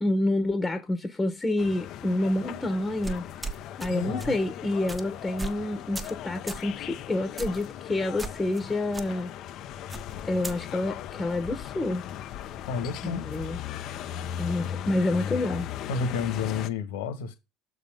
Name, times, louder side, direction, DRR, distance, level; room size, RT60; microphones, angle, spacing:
voice 1, 0.0-3.2 3.8-9.3 10.2-12.0 13.0-13.6 14.4-15.7, left 2 dB, 15° left, 1.3 m, -28 dB
sound 1, 1.6-16.7, left 10 dB, 60° left, 0.7 m, -38 dB
sound 2, 3.0-3.9 4.2-4.4 4.9-5.0 5.4-5.6 5.9-6.2 6.5-6.7 7.4-7.7 8.2-8.6 8.9-9.1 9.9-10.6, right 3 dB, 15° right, 1.3 m, -36 dB
voice 2, 3.9-4.3 12.7-13.3 15.9-17.3, left 5 dB, 80° left, 1.7 m, -31 dB
6.7 x 4.1 x 5.2 m
hypercardioid pair, 85°, 0 cm